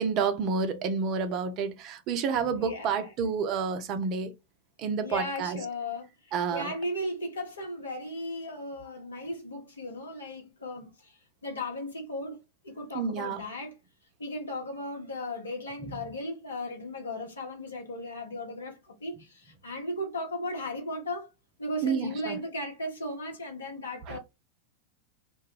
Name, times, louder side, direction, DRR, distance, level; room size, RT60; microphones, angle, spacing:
voice 1, 0.0-4.3 4.8-5.6 6.3-6.7 12.9-13.5 21.8-22.4 24.1-24.2, right 5 dB, 40° right, 0.5 m, -29 dB
voice 2, 2.6-3.1 5.0-12.4 12.6-13.7 14.2-21.3 21.6-24.2, left 1 dB, 70° left, 1.0 m, -36 dB
2.3 x 2.1 x 3.7 m
figure-of-eight pair, 90°, 0 cm